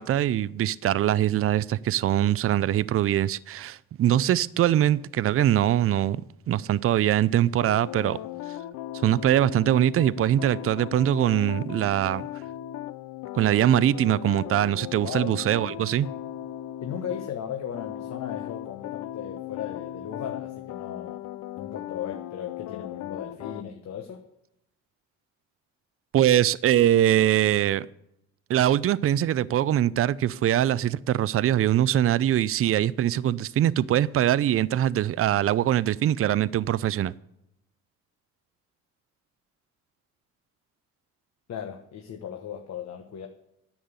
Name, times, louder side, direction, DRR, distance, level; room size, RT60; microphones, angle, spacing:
voice 1, 0.0-6.2 6.5-8.2 9.0-12.2 13.3-16.1 26.1-27.9 28.5-37.1, right 11 dB, 50° right, 0.5 m, -22 dB
sound 1, 7.6-17.3 17.7-23.6, left 13 dB, 80° left, 0.5 m, -37 dB
voice 2, 15.0-15.3 16.8-21.2 21.6-24.3 41.5-43.3, left 9 dB, 65° left, 1.2 m, -36 dB
10.0 x 7.2 x 8.1 m
cardioid pair, 90°, 30 cm